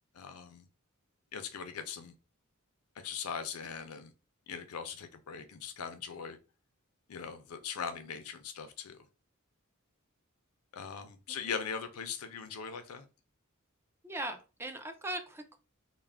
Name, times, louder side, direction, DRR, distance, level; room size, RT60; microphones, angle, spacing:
voice 1, 0.1-0.7 1.3-2.1 3.0-4.1 4.5-6.4 7.1-9.0 10.7-13.1, left 6 dB, 80° left, 8 dB, 0.5 m, -40 dB
voice 2, 14.0-15.6, right 1 dB, 10° right, 6 dB, 0.3 m, -40 dB
2.3 x 2.1 x 3.3 m, 0.31 s
head